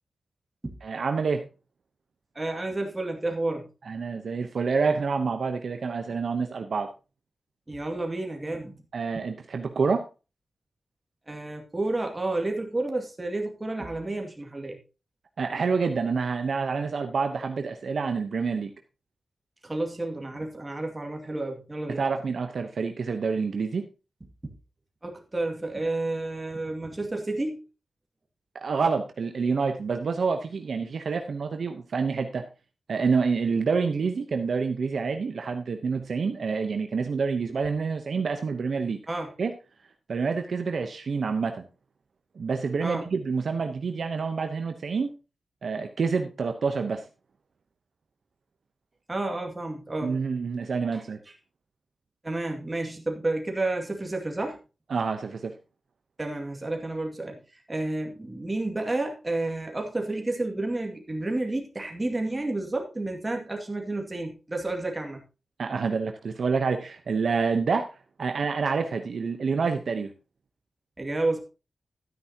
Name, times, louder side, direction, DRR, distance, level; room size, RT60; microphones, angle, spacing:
voice 1, 0.8-1.5 3.8-6.9 8.9-10.0 15.4-18.7 21.9-23.9 28.5-32.5 32.9-39.0 39.4-39.5 40.1-41.7 42.4-45.1 45.6-47.0 50.0-51.2 54.9-55.5 65.6-67.9 68.2-70.1, right 5 dB, 65° right, 6 dB, 0.9 m, -27 dB
voice 2, 2.4-3.7 7.7-8.7 11.3-14.8 19.6-22.0 25.0-27.6 39.1-39.3 42.8-43.1 49.1-50.1 50.9-51.0 52.2-54.6 56.2-57.4 57.7-65.2 71.0-71.4, right 2 dB, 20° right, 2 dB, 2.2 m, -30 dB
13.0 x 9.4 x 2.9 m, 0.30 s
wide cardioid pair, 150°, 0 cm